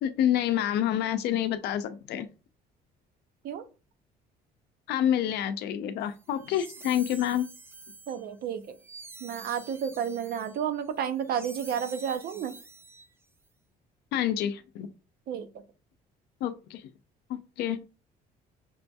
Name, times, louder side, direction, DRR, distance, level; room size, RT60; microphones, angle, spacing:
voice 1, 0.0-2.3 4.9-7.5 14.1-14.9 16.4-16.9 17.3-17.8, left 11 dB, 75° left, 0.5 m, -28 dB
sound 1, 6.1-13.4, right 3 dB, 15° right, 0.4 m, -48 dB
voice 2, 8.1-8.8 9.2-12.5 15.3-15.5, right 8 dB, 65° right, 0.6 m, -31 dB
6.0 x 2.6 x 2.3 m
cardioid pair, 110°, 17 cm